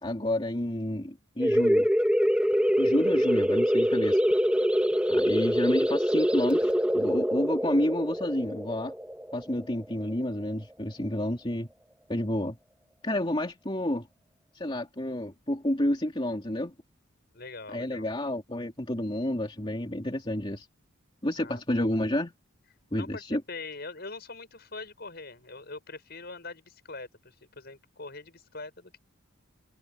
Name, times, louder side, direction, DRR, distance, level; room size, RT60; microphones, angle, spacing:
voice 1, 0.0-1.9 2.8-4.2 5.1-8.9 9.3-11.7 12.1-12.6 13.0-14.1 14.5-16.7 17.7-20.7 21.2-22.3 22.9-23.4, left 1 dB, 25° left, 2.9 m, -30 dB
sound 1, 1.4-10.7, equal, 5° right, 1.8 m, -25 dB
voice 2, 17.3-18.1 21.4-21.6 23.0-23.2 23.5-29.0, left 3 dB, 50° left, 6.7 m, -43 dB
head